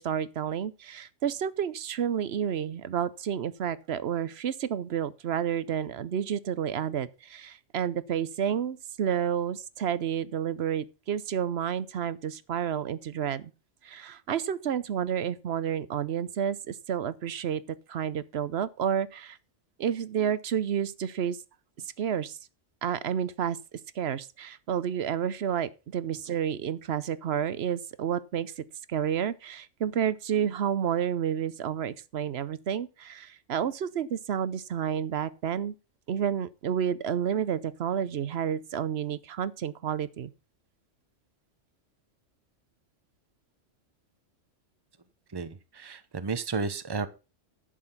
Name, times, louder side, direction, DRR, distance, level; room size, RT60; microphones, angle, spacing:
voice 1, 0.0-13.5 13.8-19.4 19.8-21.4 22.0-22.4 22.8-23.6 24.0-28.6 28.9-35.7 36.1-40.3, right 8 dB, 60° right, 0.9 m, -30 dB
voice 2, 45.3-47.1, right 4 dB, 20° right, 0.8 m, -32 dB
11.0 x 6.7 x 5.7 m
omnidirectional pair, 1.3 m